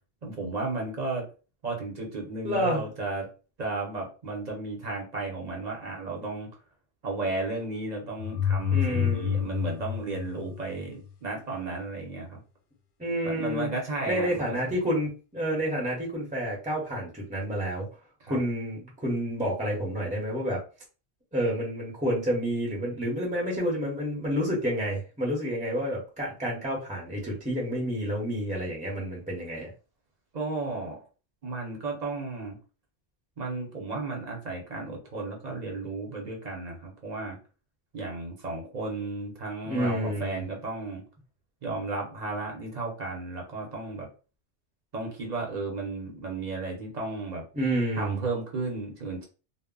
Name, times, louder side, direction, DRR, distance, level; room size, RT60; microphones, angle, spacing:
voice 1, 0.2-1.3 1.6-3.3 3.6-6.5 7.0-12.4 13.2-14.6 18.2-18.4 30.3-31.0 31.4-32.6 33.4-37.4 37.9-41.0 41.6-44.1 44.9-47.4 48.0-49.2, right 3 dB, 45° right, 0 dB, 0.8 m, -34 dB
voice 2, 2.4-2.8 8.7-9.5 13.0-13.7 14.1-17.9 18.3-20.6 21.3-29.7 39.6-40.4 47.5-48.2, equal, 10° right, -3 dB, 0.6 m, -29 dB
sound 1, 8.2-11.1, left 8 dB, 60° left, 0.7 m, -28 dB
2.1 x 2.0 x 3.7 m, 0.35 s
omnidirectional pair, 1.1 m